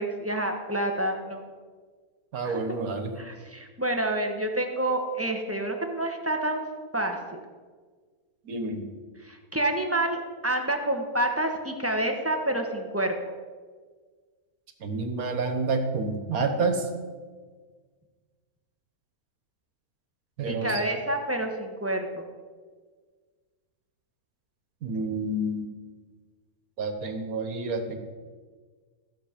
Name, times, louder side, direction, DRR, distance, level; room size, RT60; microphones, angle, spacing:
voice 1, 0.0-1.4 2.4-2.6 3.2-6.6 6.9-7.4 9.2-13.1 20.4-22.2, right 1 dB, 10° right, 3 dB, 1.0 m, -28 dB
voice 2, 2.3-3.2 8.5-8.9 14.8-16.9 20.4-20.8 24.8-25.7 26.8-28.0, right 3 dB, 70° right, 6 dB, 1.6 m, -29 dB
14.5 x 6.9 x 5.1 m, 1.5 s
omnidirectional pair, 1.6 m